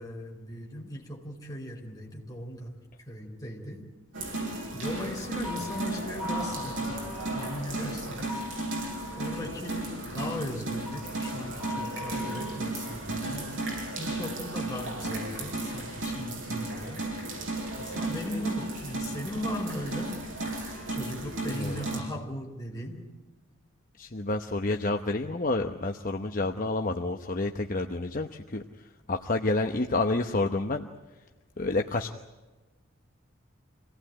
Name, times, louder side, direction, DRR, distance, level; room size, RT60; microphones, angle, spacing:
voice 1, 0.0-2.7 3.1-3.9 4.7-7.0 7.3-8.4 9.2-13.5 14.0-17.0 17.8-20.2 20.9-23.1, left 1 dB, 20° left, 0 dB, 4.2 m, -38 dB
sound 1, 4.1-22.0, right 2 dB, 70° right, 6.6 m, -34 dB
sound 2, 5.4-7.6 8.3-9.5 10.8-13.0, left 3 dB, 5° right, 6.2 m, -41 dB
voice 2, 21.5-21.8 24.0-28.6 29.1-30.8 31.6-32.1, left 2 dB, 40° left, 5 dB, 0.9 m, -29 dB
26.5 x 18.0 x 8.9 m, 1.2 s
head